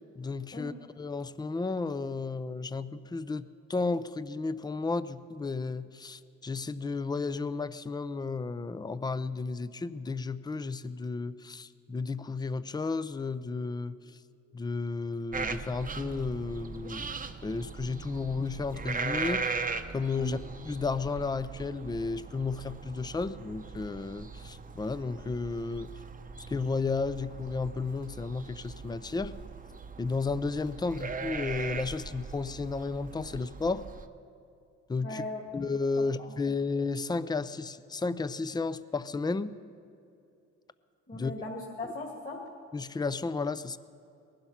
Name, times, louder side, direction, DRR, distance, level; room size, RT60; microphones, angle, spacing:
voice 1, 0.2-14.0 14.5-19.6 19.9-25.9 26.5-29.3 30.0-33.9 34.9-35.2 35.5-39.5 41.1-41.3 41.8-41.9 42.7-43.8, left 4 dB, 15° left, 15 dB, 0.5 m, -33 dB
sound 1, 15.3-34.0, right 4 dB, 25° right, 0.8 m, -39 dB
voice 2, 35.0-35.4 36.2-36.3 41.1-42.4, left 1 dB, 30° left, -1 dB, 2.1 m, -38 dB
19.5 x 11.5 x 5.7 m, 2.5 s
cardioid pair, 90°, 30 cm